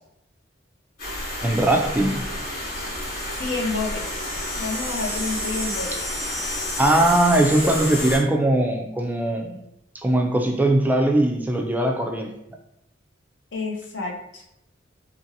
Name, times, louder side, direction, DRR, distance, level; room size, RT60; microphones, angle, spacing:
sound 1, 1.0-8.2, left 1 dB, 50° left, 1.1 m, -30 dB
voice 1, 1.4-2.3 6.8-9.6 10.0-12.3, right 1 dB, 10° right, 1 dB, 0.3 m, -20 dB
voice 2, 3.3-4.2 4.6-6.0 13.5-14.4, left 3 dB, 70° left, 0 dB, 0.6 m, -29 dB
2.9 x 2.7 x 2.6 m, 0.80 s
head